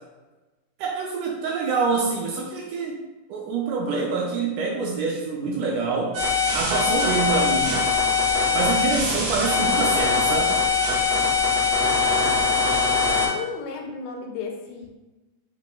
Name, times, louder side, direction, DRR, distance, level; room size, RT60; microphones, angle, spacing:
voice 1, 0.8-3.0 3.3-6.2 6.5-7.8 8.5-10.6, right 4 dB, 80° right, -1 dB, 1.9 m, -26 dB
sound 1, 6.1-13.3, left 4 dB, 65° right, 2.1 m, -22 dB
voice 2, 13.1-14.9, left 5 dB, 85° left, 2 dB, 2.2 m, -34 dB
6.1 x 3.2 x 2.2 m, 1.1 s
omnidirectional pair, 3.9 m